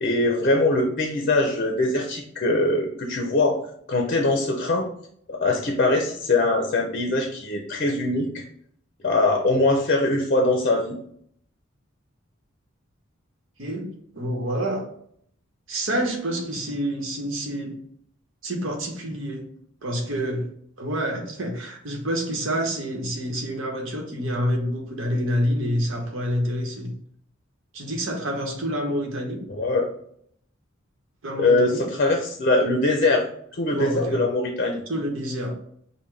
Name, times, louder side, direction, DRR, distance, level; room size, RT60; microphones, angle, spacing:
voice 1, 0.0-3.6 3.9-4.9 5.3-8.4 9.0-11.0 29.6-29.8 31.4-33.3 33.5-34.8, left 2 dB, 45° left, 3 dB, 0.5 m, -22 dB
voice 2, 13.6-14.8 15.7-17.8 18.4-19.5 19.8-20.5 20.8-26.9 27.7-29.4 31.2-31.8 33.7-34.2 34.9-35.5, equal, 70° right, 1 dB, 1.0 m, -27 dB
5.5 x 2.2 x 3.2 m, 0.67 s
head